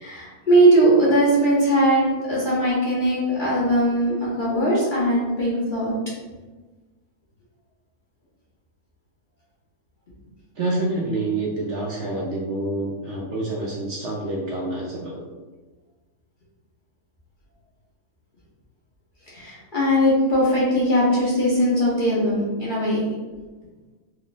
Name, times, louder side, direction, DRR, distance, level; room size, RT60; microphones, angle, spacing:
voice 1, 0.0-5.9 19.3-23.0, right 1 dB, 40° left, -7 dB, 0.8 m, -20 dB
voice 2, 10.6-15.2, right 2 dB, 65° right, -3 dB, 0.7 m, -27 dB
3.3 x 2.2 x 3.9 m, 1.3 s
omnidirectional pair, 1.6 m